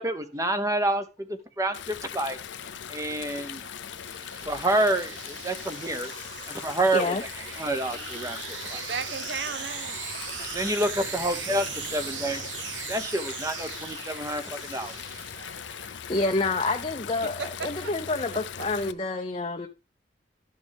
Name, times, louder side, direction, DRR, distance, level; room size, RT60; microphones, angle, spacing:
voice 1, 0.0-2.4 2.9-3.6 4.4-6.1 6.6-7.3 7.6-8.8 10.4-11.7 11.9-12.4 12.9-14.9, right 1 dB, 15° right, 0.8 m, -28 dB
Stream, 1.7-18.9, left 9 dB, 80° left, 0.5 m, -40 dB
sound 1, 2.4-15.8, right 6 dB, 90° right, 1.1 m, -39 dB
voice 2, 2.6-3.7 4.3-4.5 5.8-6.0 8.4-10.2 10.6-10.8 11.4-11.6 12.3-13.2 15.1-16.2 17.2-18.5, right 5 dB, 65° right, 0.8 m, -40 dB
voice 3, 6.9-7.2 14.8-14.9 16.1-19.7, left 3 dB, 30° left, 0.6 m, -28 dB
12.0 x 6.1 x 3.5 m
head